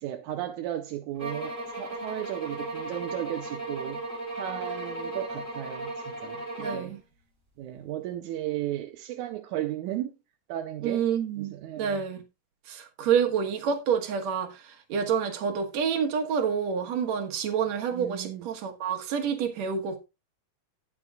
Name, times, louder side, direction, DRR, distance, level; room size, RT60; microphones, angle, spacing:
voice 1, 0.0-4.0 4.4-6.9 7.6-10.2 10.5-11.1 11.4-12.0 17.9-18.5, right 13 dB, 85° right, 2.2 m, -35 dB
sound 1, 1.2-7.0, right 2 dB, 15° right, 3.0 m, -36 dB
voice 2, 6.6-7.0 10.8-12.2 12.7-14.5 14.9-20.0, right 7 dB, 65° right, 2.5 m, -28 dB
18.0 x 6.1 x 2.4 m
omnidirectional pair, 3.4 m